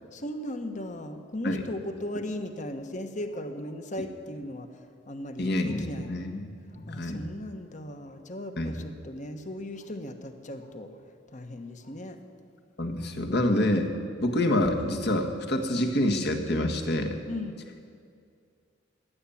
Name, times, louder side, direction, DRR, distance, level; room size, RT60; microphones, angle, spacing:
voice 1, 0.1-4.7 5.1-6.2 6.9-10.9 11.3-12.2 17.3-17.6, left 1 dB, 40° left, 7 dB, 1.2 m, -37 dB
voice 2, 5.4-6.5 6.8-7.2 8.6-8.7 12.8-13.9 14.2-17.2, left 1 dB, 60° left, 3 dB, 1.6 m, -27 dB
15.5 x 10.5 x 8.6 m, 2.3 s
head